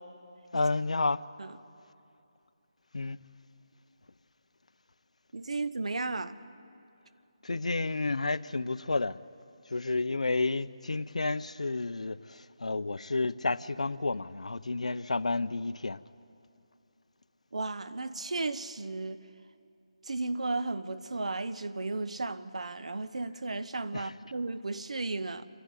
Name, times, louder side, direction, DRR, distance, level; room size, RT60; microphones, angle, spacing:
voice 1, 0.5-1.2 2.9-3.2 7.4-9.2 9.7-16.0 23.9-24.1, left 3 dB, 90° left, 0.6 m, -31 dB
voice 2, 5.3-6.4 17.5-19.2 20.0-25.5, right 3 dB, 75° right, 1.0 m, -34 dB
27.5 x 11.5 x 9.7 m
figure-of-eight pair, 165°, 3 cm